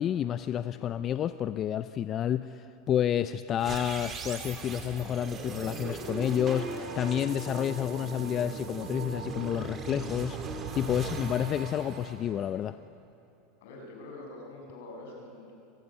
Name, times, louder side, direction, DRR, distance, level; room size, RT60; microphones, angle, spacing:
voice 1, 0.0-12.8, left 10 dB, 30° left, 13 dB, 0.5 m, -30 dB
sound 1, 3.5-12.8, right 4 dB, 25° right, 2.6 m, -39 dB
sound 2, 6.6-12.5, right 9 dB, 55° right, 1.6 m, -48 dB
voice 2, 13.6-15.5, left 2 dB, 75° left, 0 dB, 7.3 m, -45 dB
24.0 x 17.5 x 10.0 m, 2.7 s
supercardioid pair, 150°, 0 cm